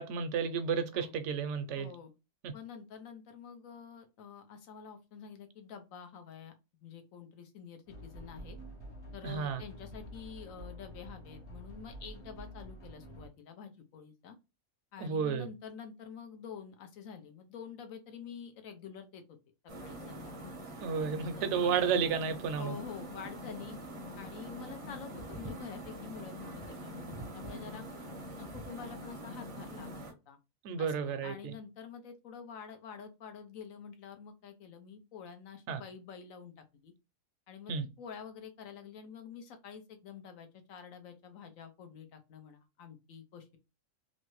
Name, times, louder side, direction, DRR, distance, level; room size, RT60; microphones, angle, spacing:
voice 1, 0.0-1.9 2.4-2.5 9.2-9.6 15.0-15.5 20.8-22.8 30.6-31.3 35.7-35.8 37.7-37.8, right 6 dB, 65° right, 0.8 m, -32 dB
voice 2, 1.8-2.1 2.5-6.5 6.8-8.6 9.1-14.4 14.9-19.4 19.8-21.7 22.6-23.8 24.2-27.9 28.4-30.4 30.8-36.9 37.5-43.6, left 7 dB, 75° left, 1.1 m, -48 dB
sound 1, 7.9-13.3, equal, 55° left, 1.3 m, -48 dB
sound 2, 19.7-30.1, equal, 35° right, 0.5 m, -44 dB
3.1 x 2.7 x 3.0 m
omnidirectional pair, 1.4 m